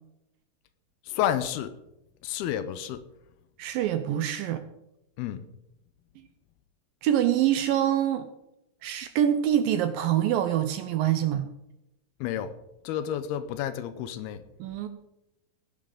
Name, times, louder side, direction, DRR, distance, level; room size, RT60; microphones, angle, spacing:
voice 1, 1.1-1.7 2.2-3.0 5.2-5.4 12.2-12.5 12.8-14.4, left 10 dB, 80° left, 12 dB, 2.6 m, -30 dB
voice 2, 3.6-4.6 7.0-8.3 8.8-11.5 14.6-14.9, right 11 dB, 80° right, 10 dB, 2.1 m, -25 dB
17.0 x 10.5 x 3.9 m, 0.87 s
omnidirectional pair, 4.6 m